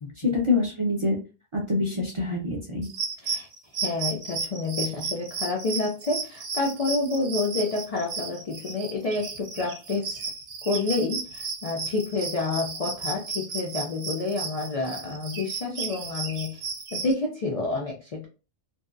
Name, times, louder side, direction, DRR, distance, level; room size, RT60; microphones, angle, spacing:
voice 1, 0.2-1.2 1.5-2.9, left 3 dB, 40° right, -2 dB, 0.5 m, -25 dB
sound 1, 2.8-17.1, right 4 dB, 75° right, 0.9 m, -34 dB
voice 2, 3.8-10.3 10.6-16.6 16.9-18.3, left 3 dB, 60° left, -1 dB, 0.3 m, -29 dB
2.6 x 2.2 x 2.4 m, 0.33 s
omnidirectional pair, 1.2 m